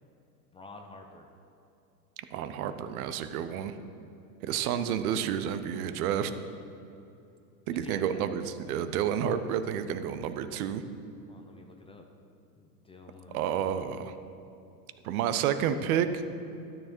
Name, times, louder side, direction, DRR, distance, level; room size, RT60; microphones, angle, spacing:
voice 1, 0.5-1.3 7.7-8.3 11.3-12.0 12.6-13.6, left 3 dB, 10° left, 3 dB, 0.5 m, -49 dB
voice 2, 2.3-3.7 4.4-6.3 7.7-10.8 13.3-14.1 15.0-16.2, right 9 dB, 60° right, 10 dB, 0.8 m, -30 dB
12.5 x 6.8 x 4.4 m, 2.7 s
hypercardioid pair, 110°, 49 cm